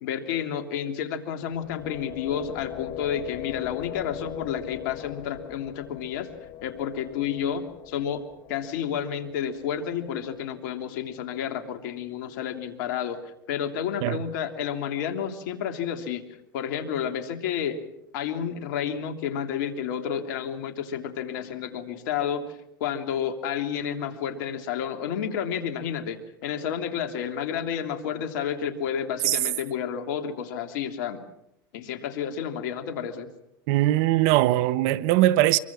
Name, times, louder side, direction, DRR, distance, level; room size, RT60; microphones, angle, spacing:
voice 1, 0.0-6.3 6.6-8.2 8.5-16.2 16.5-31.2 31.7-33.3, left 8 dB, 70° left, 3.1 m, -30 dB
sound 1, 1.4-11.3, left 14 dB, 50° left, 1.0 m, -41 dB
voice 2, 33.7-35.6, right 16 dB, 60° right, 1.2 m, -21 dB
25.5 x 23.0 x 6.2 m
hypercardioid pair, 95°, 11 cm